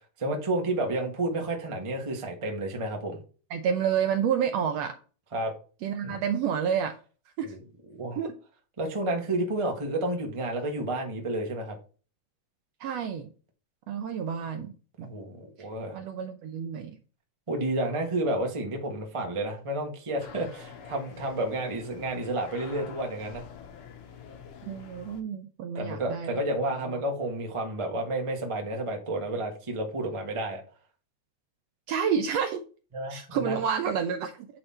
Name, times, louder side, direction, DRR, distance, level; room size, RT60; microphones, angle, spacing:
voice 1, 0.2-3.2 5.3-5.5 6.0-6.2 7.4-7.6 7.9-8.2 8.8-11.8 15.0-16.0 17.5-23.4 25.7-30.6 32.9-33.6, right 1 dB, 45° right, 2 dB, 0.4 m, -31 dB
voice 2, 3.5-5.0 5.8-6.9 7.4-7.5 8.2-8.4 12.8-13.3 13.9-14.7 15.0-15.1 15.9-17.0 24.6-26.4 31.9-32.6 33.1-34.5, right 7 dB, 75° right, 6 dB, 1.5 m, -29 dB
sound 1, 20.2-25.2, left 7 dB, 65° left, 2.0 m, -46 dB
9.6 x 4.0 x 4.3 m, 0.38 s
omnidirectional pair, 3.6 m